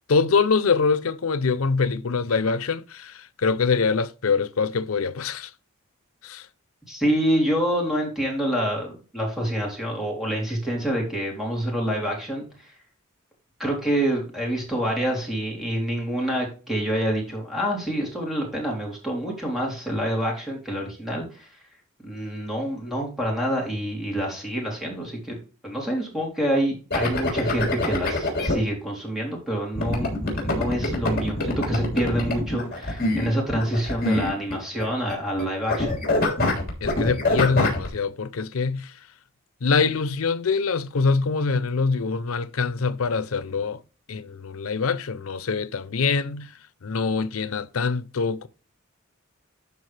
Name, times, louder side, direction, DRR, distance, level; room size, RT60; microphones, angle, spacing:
voice 1, 0.1-5.5 6.2-6.5 36.8-39.0 39.6-43.8 44.1-46.5 46.8-48.5, left 4 dB, 85° left, 0.6 m, -24 dB
voice 2, 6.9-12.5 13.6-21.5 22.0-25.4 25.6-35.9, right 1 dB, ahead, 3.2 m, -27 dB
sound 1, 26.9-28.5 29.8-34.8 35.1-35.4 35.7-37.9, left 2 dB, 45° left, 3.2 m, -25 dB
12.0 x 4.5 x 3.3 m
head